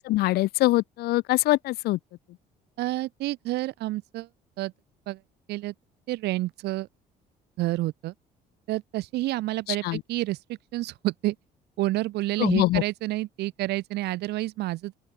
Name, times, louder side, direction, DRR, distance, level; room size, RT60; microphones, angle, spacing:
voice 1, 0.0-2.0 9.8-10.0 12.4-12.8, left 18 dB, 70° left, 0.4 m, -23 dB
voice 2, 2.8-4.3 4.6-4.7 5.1-5.2 5.5-5.7 6.1-6.9 7.6-8.1 8.7-11.3 11.8-15.0, right 17 dB, 80° right, 1.3 m, -29 dB
open air
cardioid pair, 110°, 17 cm